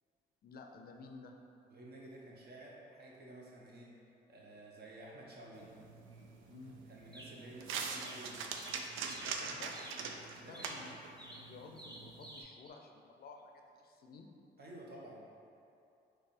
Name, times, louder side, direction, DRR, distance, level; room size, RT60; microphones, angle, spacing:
voice 1, 0.4-1.3 6.5-6.8 9.4-9.7 10.5-11.0 11.4-14.3, left 4 dB, 50° left, 3 dB, 0.4 m, -53 dB
voice 2, 1.7-4.0 4.3-5.7 6.7-8.5 9.2-9.6 10.4-10.8 14.6-15.2, right 1 dB, 55° right, -4 dB, 0.9 m, -52 dB
sound 1, 5.5-12.4, right 5 dB, 80° right, 0.4 m, -44 dB
sound 2, 6.1-6.2 7.1-7.6 7.9-9.4 9.7-10.1 10.5-12.7, right 1 dB, 20° right, 0.7 m, -52 dB
3.3 x 3.1 x 4.2 m, 2.7 s
cardioid pair, 90°, 20 cm